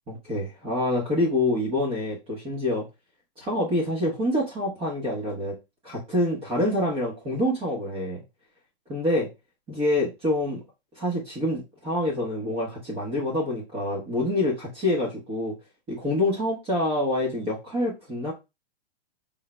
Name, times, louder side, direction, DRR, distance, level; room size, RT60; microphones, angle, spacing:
voice 1, 0.1-2.8 3.4-5.5 5.8-8.2 8.9-9.3 9.7-10.6 11.0-15.5 15.9-18.3, left 1 dB, 20° right, -4 dB, 1.2 m, -26 dB
5.7 x 3.8 x 2.2 m, 0.25 s
hypercardioid pair, 140°, 32 cm